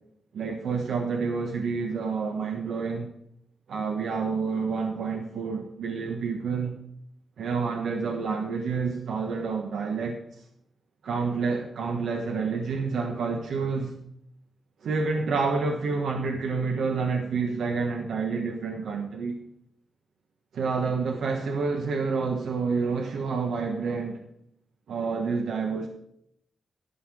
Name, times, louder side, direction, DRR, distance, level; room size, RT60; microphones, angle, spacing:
voice 1, 0.3-3.1 3.7-6.8 7.4-10.2 11.0-14.0 14.8-19.3 20.5-24.2 24.9-25.9, right 4 dB, 85° right, 1.2 m, -28 dB
12.5 x 5.7 x 6.2 m
wide cardioid pair, 125°, 0 cm